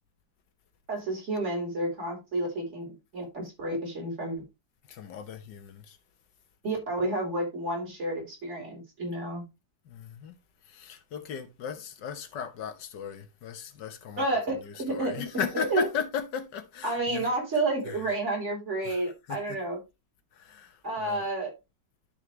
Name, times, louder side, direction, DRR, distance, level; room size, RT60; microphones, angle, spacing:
voice 1, 0.9-4.4 6.6-9.4 14.2-15.9 16.8-19.8 20.8-21.5, right 2 dB, 35° right, 3.8 m, -30 dB
voice 2, 4.8-6.0 9.8-17.3 17.9-18.2 18.8-19.6 20.3-21.3, left 7 dB, 65° left, 1.7 m, -37 dB
12.0 x 4.4 x 3.2 m
omnidirectional pair, 2.0 m